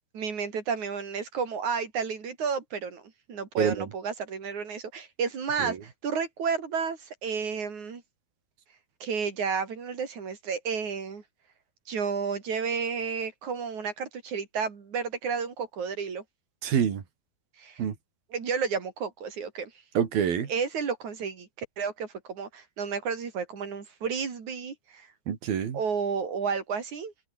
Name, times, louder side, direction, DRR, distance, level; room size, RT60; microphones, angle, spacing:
voice 1, 0.1-3.0 3.3-8.0 9.0-11.2 11.9-16.2 17.6-17.8 18.3-19.7 20.5-25.1 25.7-27.1, right 6 dB, 55° right, 4.6 m, -31 dB
voice 2, 16.6-17.0 17.8-17.9 20.0-20.5 25.3-25.8, right 8 dB, 85° right, 4.7 m, -26 dB
omnidirectional pair, 4.1 m